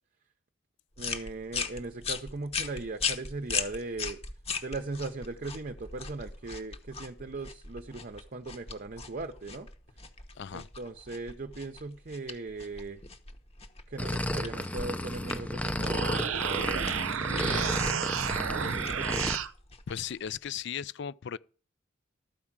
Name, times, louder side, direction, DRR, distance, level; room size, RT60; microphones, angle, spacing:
sound 1, 1.0-20.5, left 5 dB, 30° left, 1.0 m, -39 dB
voice 1, 1.0-4.2 4.6-9.7 10.5-13.0 13.9-16.9 18.6-19.4, right 3 dB, 45° right, 0.7 m, -39 dB
voice 2, 10.4-10.7 19.9-21.4, left 8 dB, 60° left, 0.4 m, -36 dB
sound 2, 14.0-19.4, left 1 dB, 5° left, 0.6 m, -33 dB
sound 3, 15.7-19.5, right 8 dB, 85° right, 0.6 m, -31 dB
13.5 x 4.9 x 7.2 m
head